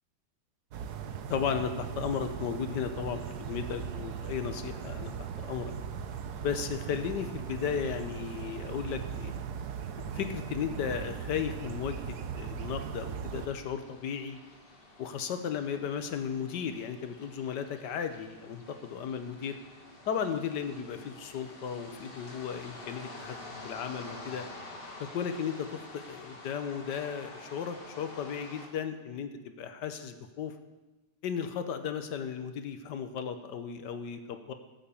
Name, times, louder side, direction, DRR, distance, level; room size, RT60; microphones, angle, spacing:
sound 1, 0.7-13.5, right 7 dB, 70° right, 1.4 m, -39 dB
voice 1, 1.3-5.7 6.4-9.3 10.1-14.4 15.0-19.6 20.1-23.4 23.6-24.5 25.0-30.5 31.2-34.5, left 7 dB, 85° left, 8 dB, 1.5 m, -35 dB
sound 2, 13.3-28.7, left 2 dB, 35° left, 1.9 m, -48 dB
14.5 x 8.0 x 6.9 m, 1.1 s
omnidirectional pair, 1.8 m